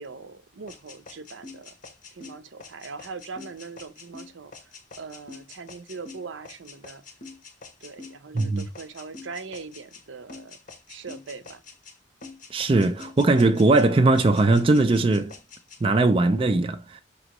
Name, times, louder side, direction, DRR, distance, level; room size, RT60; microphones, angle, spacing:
voice 1, 0.0-1.8 2.1-7.0 7.8-10.6 10.9-11.6, right 4 dB, 75° right, 0.6 m, -41 dB
sound 1, 0.7-10.0 10.3-12.0 12.2-13.9 14.1-15.8, left 4 dB, 40° left, 0.8 m, -45 dB
voice 2, 8.3-8.7 12.5-15.3 15.8-17.0, right 2 dB, 30° right, 0.4 m, -20 dB
5.2 x 3.0 x 2.9 m
head